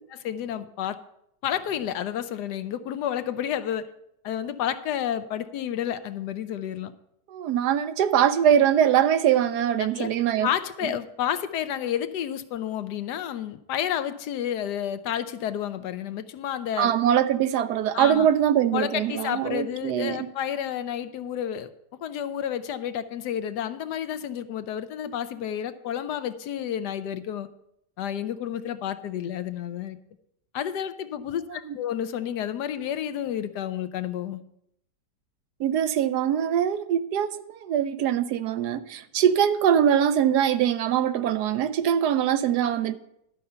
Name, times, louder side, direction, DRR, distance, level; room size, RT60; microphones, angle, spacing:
voice 1, 0.1-1.0 1.4-3.9 4.2-6.9 10.0-10.1 10.4-16.9 17.9-18.3 18.7-21.7 22.0-27.5 28.0-30.0 30.5-34.4, left 10 dB, 75° left, 1.2 m, -30 dB
voice 2, 7.3-10.5 16.8-20.3 31.5-31.8 35.6-43.0, right 9 dB, 75° right, 1.1 m, -23 dB
11.5 x 5.5 x 6.7 m
omnidirectional pair, 1.9 m